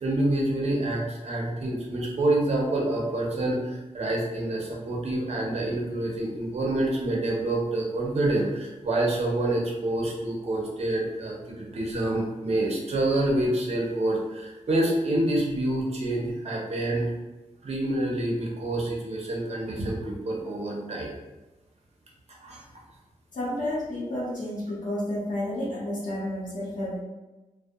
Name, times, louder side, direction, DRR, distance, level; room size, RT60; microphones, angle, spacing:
voice 1, 0.0-17.1 17.6-21.1 22.4-22.6, right 1 dB, 55° right, -2 dB, 0.5 m, -27 dB
voice 2, 23.3-27.0, left 1 dB, 80° left, -7 dB, 0.8 m, -31 dB
2.6 x 2.0 x 2.3 m, 1.1 s
wide cardioid pair, 165°, 13 cm